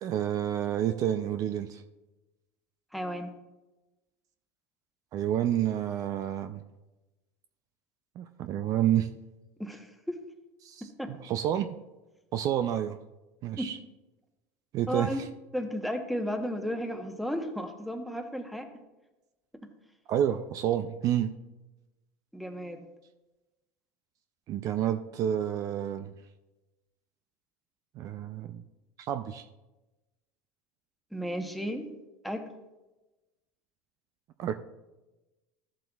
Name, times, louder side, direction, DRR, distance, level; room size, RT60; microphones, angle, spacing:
voice 1, 0.0-1.8 5.1-6.6 8.2-9.1 10.6-11.7 12.3-13.0 13.4-13.8 14.7-15.3 20.1-21.3 24.5-26.1 28.0-28.6 29.0-29.5 34.4-34.6, right 11 dB, 45° right, 9 dB, 0.4 m, -29 dB
voice 2, 2.9-3.3 9.6-10.2 11.0-11.1 13.6-13.7 14.9-15.2 15.5-18.7 22.3-22.8 31.1-31.9 32.2-32.5, equal, ahead, 6 dB, 1.0 m, -33 dB
13.5 x 7.5 x 2.3 m, 1.1 s
supercardioid pair, 115°, 8 cm